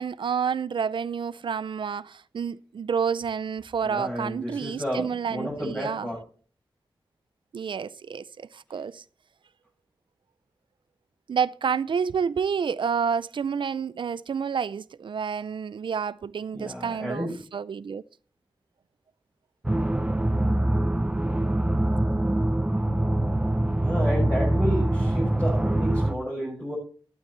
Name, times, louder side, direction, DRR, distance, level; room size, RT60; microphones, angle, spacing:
voice 1, 0.0-6.1 7.5-9.0 11.3-18.0, right 6 dB, 80° right, 0.5 m, -29 dB
voice 2, 3.8-6.2 16.5-17.3 23.8-26.8, equal, 15° left, 7.2 m, -31 dB
sound 1, 19.6-26.1, right 1 dB, 15° right, 0.7 m, -24 dB
14.5 x 12.0 x 3.3 m
wide cardioid pair, 85°, 8 cm